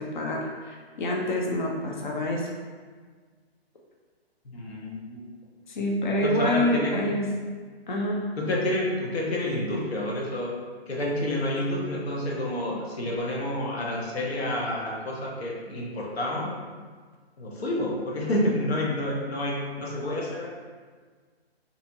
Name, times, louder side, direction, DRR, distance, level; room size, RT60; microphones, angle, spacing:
voice 1, 0.0-2.5 5.7-7.4 7.9-8.3, left 1 dB, 50° left, 0 dB, 0.7 m, -27 dB
voice 2, 4.4-5.3 6.1-7.0 8.4-10.5 10.9-16.5 17.4-20.5, left 1 dB, 70° left, -2 dB, 1.1 m, -29 dB
4.2 x 2.8 x 2.8 m, 1.5 s
hypercardioid pair, 145°, 32 cm